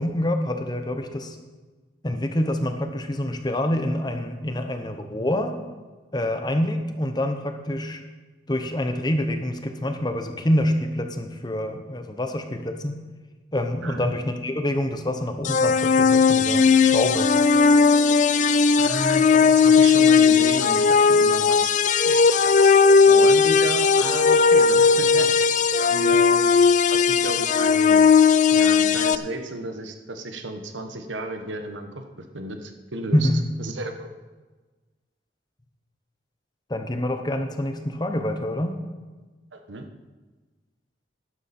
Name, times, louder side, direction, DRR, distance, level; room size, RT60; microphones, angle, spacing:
voice 1, 0.0-1.4 2.0-5.5 6.1-8.0 8.5-13.0 13.5-17.3 33.1-33.4 36.7-38.8, left 1 dB, 25° left, 6 dB, 0.9 m, -26 dB
voice 2, 13.8-14.1 18.8-21.7 22.0-22.2 22.6-22.7 23.1-25.5 25.8-26.4 26.9-28.0 28.5-31.9 32.3-33.3 33.6-34.1 39.5-39.9, right 2 dB, 85° right, 6 dB, 1.2 m, -33 dB
sound 1, 15.4-29.2, left 5 dB, 40° left, 0.4 m, -17 dB
12.5 x 11.0 x 4.3 m, 1.3 s
head